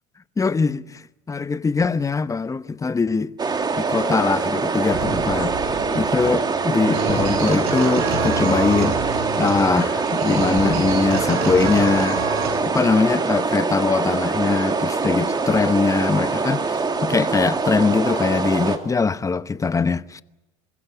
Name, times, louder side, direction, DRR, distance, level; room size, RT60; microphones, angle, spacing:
voice 1, 0.4-3.3 3.8-5.6 5.9-12.2 12.7-20.2, left 4 dB, 15° left, 0.9 m, -22 dB
sound 1, 3.4-18.8, right 4 dB, 25° right, 2.5 m, -24 dB
sound 2, 4.9-12.9, right 4 dB, 65° right, 8.0 m, -28 dB
26.0 x 16.0 x 8.5 m
hypercardioid pair, 85°, 18 cm